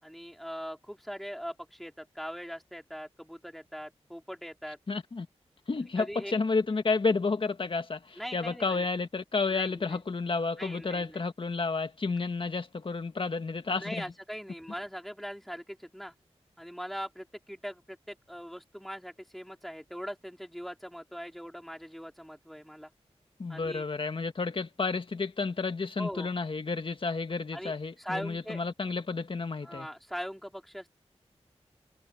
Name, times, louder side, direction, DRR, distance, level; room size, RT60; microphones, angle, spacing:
voice 1, 0.0-4.8 6.0-6.3 8.2-8.8 9.5-10.0 10.6-11.2 13.8-16.1 16.6-22.9 23.5-23.9 26.0-26.3 27.5-28.6 29.6-30.9, equal, ahead, 3.5 m, -41 dB
voice 2, 4.9-5.3 5.7-14.1 23.4-29.9, left 4 dB, 50° left, 1.6 m, -31 dB
wide cardioid pair, 95°, 11 cm